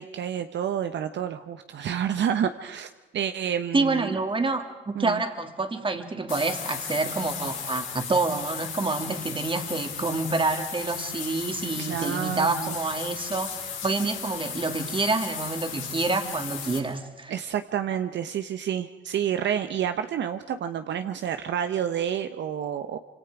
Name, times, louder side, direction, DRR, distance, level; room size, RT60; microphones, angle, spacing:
voice 1, 0.0-4.2 5.0-5.2 11.8-12.8 17.3-23.0, right 9 dB, 65° right, 9 dB, 0.9 m, -29 dB
voice 2, 3.7-17.3, right 3 dB, 25° right, 6 dB, 2.5 m, -27 dB
sound 1, 6.3-16.8, left 7 dB, 90° left, 6.5 m, -35 dB
26.0 x 25.5 x 4.9 m, 1.2 s
cardioid pair, 90°, 20 cm